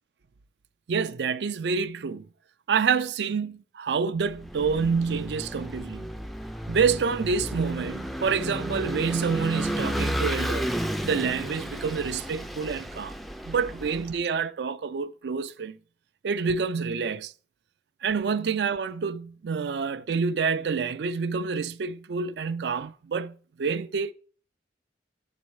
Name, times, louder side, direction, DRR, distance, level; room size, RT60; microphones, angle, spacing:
voice 1, 0.9-2.3 2.7-6.1 6.7-10.7 11.0-13.2 13.4-15.8 16.2-17.3 18.0-24.1, right 5 dB, 70° right, 0.4 m, -27 dB
Vehicle / Engine, 4.3-14.1, equal, ahead, 0.3 m, -32 dB
7.0 x 4.2 x 4.6 m
head